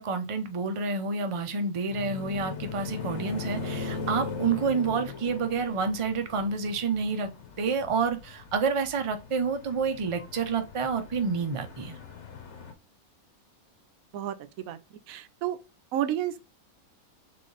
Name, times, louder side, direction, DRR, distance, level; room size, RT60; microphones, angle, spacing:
voice 1, 0.0-7.3 7.6-12.0, right 4 dB, 40° right, 0.4 m, -29 dB
sound 1, 1.9-12.7, left 5 dB, 55° left, 1.1 m, -39 dB
voice 2, 14.1-14.8 15.1-15.6 15.9-16.4, right 11 dB, 75° right, 1.0 m, -31 dB
3.7 x 3.3 x 3.8 m
omnidirectional pair, 1.6 m